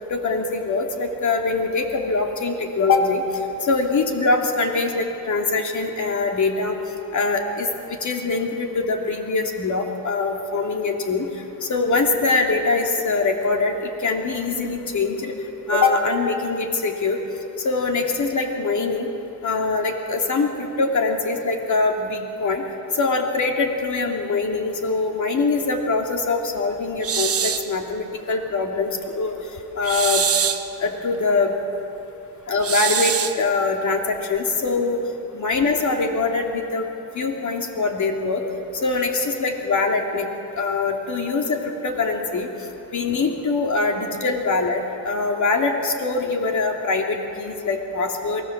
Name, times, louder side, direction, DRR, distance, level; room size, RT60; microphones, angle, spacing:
voice 1, 0.1-3.2 3.6-6.7 7.1-11.3 11.6-13.7 14.0-15.3 15.7-17.2 17.6-19.1 19.4-22.6 22.9-29.3 29.8-30.2 30.8-31.6 32.5-35.0 35.3-36.9 37.1-38.4 38.8-40.3 40.6-42.5 42.9-48.4, left 3 dB, 55° left, 2 dB, 3.0 m, -23 dB
sound 1, 27.0-27.7 29.8-30.7 32.6-33.4, right 7 dB, 40° right, 1.2 m, -23 dB
23.5 x 17.5 x 7.4 m, 2.8 s
cardioid pair, 85°, 35 cm